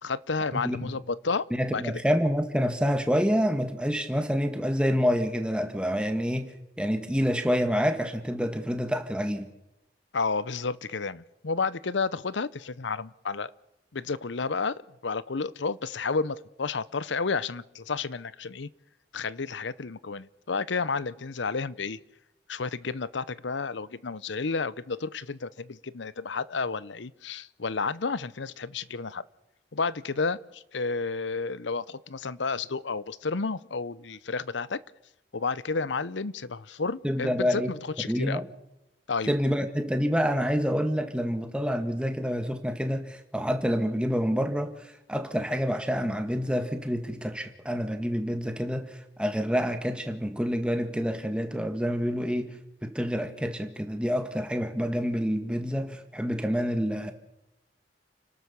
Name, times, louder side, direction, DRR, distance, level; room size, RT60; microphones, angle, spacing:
voice 1, 0.0-1.5 1.7-2.0 10.1-13.5 13.9-18.7 19.1-22.0 22.5-29.2 29.7-34.8 35.3-38.4 39.1-39.3, left 4 dB, 85° left, 0.8 m, -31 dB
voice 2, 1.5-6.5 6.8-9.5 37.0-37.7 38.1-38.5 39.3-44.7 45.1-52.5 52.8-57.1, equal, 5° right, 1.8 m, -27 dB
30.0 x 12.5 x 7.0 m
head